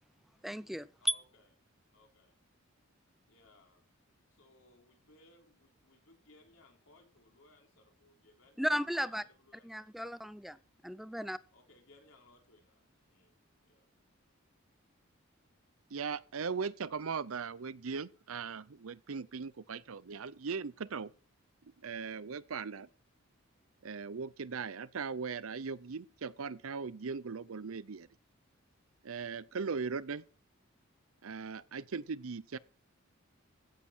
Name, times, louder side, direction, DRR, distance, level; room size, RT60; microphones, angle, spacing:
voice 1, 0.4-1.1 8.6-9.2 9.6-10.6 10.8-11.4, equal, ahead, 0.5 m, -34 dB
voice 2, 1.0-1.5 1.9-2.4 3.3-3.8 4.3-9.9 11.5-13.3 13.6-13.9, left 2 dB, 75° left, 3.8 m, -64 dB
voice 3, 15.9-21.1 21.8-22.9 23.8-28.1 29.0-30.2 31.2-32.6, right 5 dB, 80° right, 0.6 m, -39 dB
15.5 x 7.6 x 4.5 m
head